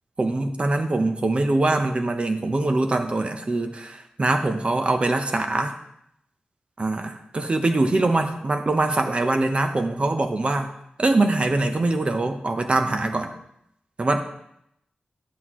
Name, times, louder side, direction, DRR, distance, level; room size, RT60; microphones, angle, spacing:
voice 1, 0.2-5.7 6.8-10.7 11.0-13.3 14.0-14.2, right 2 dB, 35° right, 6 dB, 0.9 m, -23 dB
11.5 x 8.0 x 3.1 m, 0.76 s
wide cardioid pair, 110°, 3 cm